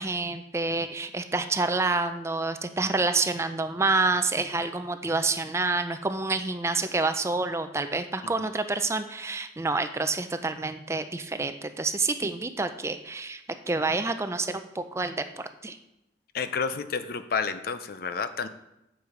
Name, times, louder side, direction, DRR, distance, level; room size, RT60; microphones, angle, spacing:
voice 1, 0.0-13.4 13.7-15.8, right 3 dB, 15° right, 9 dB, 0.4 m, -28 dB
voice 2, 16.3-18.5, left 5 dB, 55° left, 11 dB, 0.5 m, -30 dB
8.6 x 6.2 x 4.9 m, 0.87 s
head